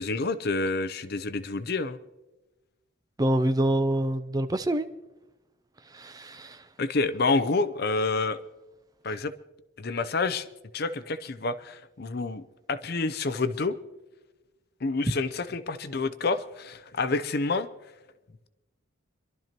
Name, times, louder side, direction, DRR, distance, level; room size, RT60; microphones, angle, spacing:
voice 1, 0.0-2.0 6.8-8.4 9.0-9.3 9.8-10.5 10.7-12.4 12.7-13.7 14.8-17.7, left 3 dB, 50° left, 11 dB, 0.6 m, -28 dB
voice 2, 3.2-4.9 5.9-6.6 9.1-9.2, right 1 dB, 20° right, 11 dB, 0.4 m, -26 dB
26.0 x 12.0 x 3.0 m, 1.1 s
head